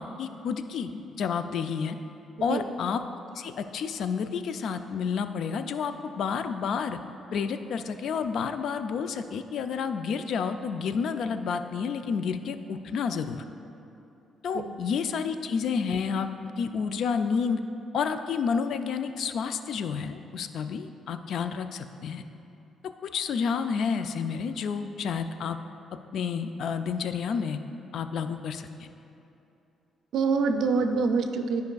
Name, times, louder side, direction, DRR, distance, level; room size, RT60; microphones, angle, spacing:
voice 1, 0.0-2.0 2.4-3.0 3.4-7.0 7.3-13.4 14.4-16.3 16.6-17.6 17.9-22.2 23.0-25.6 26.1-27.6 27.9-28.9, left 6 dB, 70° left, 9 dB, 0.3 m, -30 dB
voice 2, 30.1-31.6, right 4 dB, 75° right, 6 dB, 0.4 m, -25 dB
10.5 x 5.2 x 2.3 m, 2.8 s
cardioid pair, 90°, 0 cm